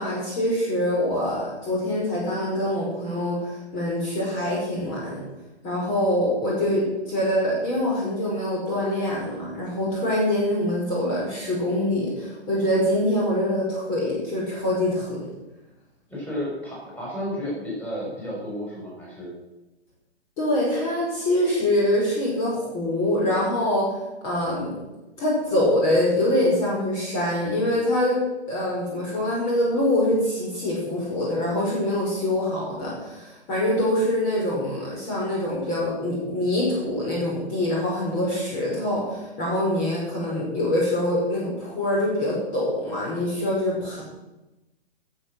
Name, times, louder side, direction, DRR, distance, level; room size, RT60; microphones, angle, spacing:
voice 1, 0.0-5.2 5.6-15.3 20.4-23.9 24.2-24.7 25.2-28.2 28.5-44.0, left 1 dB, 25° left, -4 dB, 5.6 m, -24 dB
voice 2, 16.1-19.3, equal, 5° left, -5 dB, 6.3 m, -32 dB
18.0 x 8.2 x 6.4 m, 1.0 s
figure-of-eight pair, 120°, 33 cm